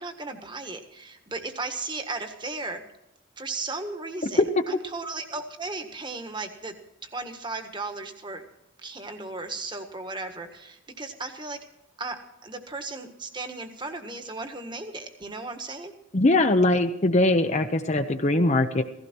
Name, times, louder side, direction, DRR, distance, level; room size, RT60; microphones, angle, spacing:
voice 1, 0.0-2.8 3.4-6.7 7.0-8.4 8.8-11.6 12.0-15.9, right 3 dB, 25° right, 7 dB, 1.5 m, -36 dB
voice 2, 16.1-18.8, left 2 dB, 35° left, 7 dB, 0.8 m, -21 dB
16.5 x 15.5 x 4.5 m, 0.87 s
head